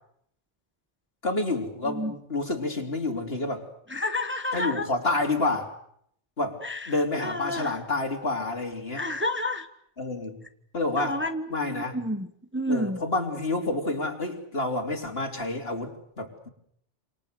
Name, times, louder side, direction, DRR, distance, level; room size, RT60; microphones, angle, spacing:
voice 1, 1.2-3.7 4.5-5.7 6.4-6.6 6.9-9.0 10.0-10.4 10.7-11.2 11.5-12.0 12.7-16.5, left 2 dB, 55° left, 3 dB, 3.8 m, -29 dB
voice 2, 3.9-4.9 6.6-7.7 8.9-9.7 11.0-12.3 12.5-13.0, left 1 dB, 10° right, 7 dB, 1.2 m, -30 dB
28.5 x 27.0 x 6.8 m, 0.70 s
omnidirectional pair, 1.2 m